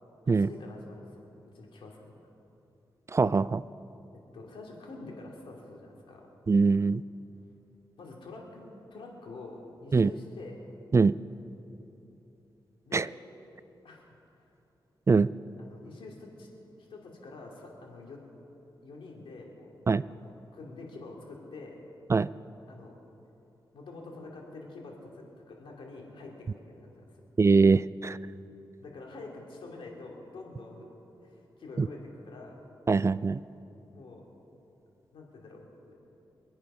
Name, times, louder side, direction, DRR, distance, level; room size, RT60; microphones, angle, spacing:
voice 1, 0.2-1.2 1.5-2.3 4.3-6.3 8.0-8.6 8.9-10.6 12.9-13.2 13.8-14.1 14.3-14.4 15.7-16.5 16.8-18.2 18.8-19.7 20.1-21.8 22.7-22.9 23.7-27.0 28.8-30.9 31.2-32.6 33.9-34.3 35.1-35.9, left 3 dB, 90° left, -1 dB, 2.7 m, -46 dB
voice 2, 3.1-3.6 6.5-7.0 9.9-10.1 10.9-11.1 12.9-13.1 15.1-15.3 19.9-20.0 22.1-22.3 27.4-28.2 31.8-31.9 32.9-33.4, right 4 dB, 35° right, 18 dB, 0.3 m, -22 dB
24.5 x 8.9 x 5.6 m, 3.0 s
cardioid pair, 65°, 9 cm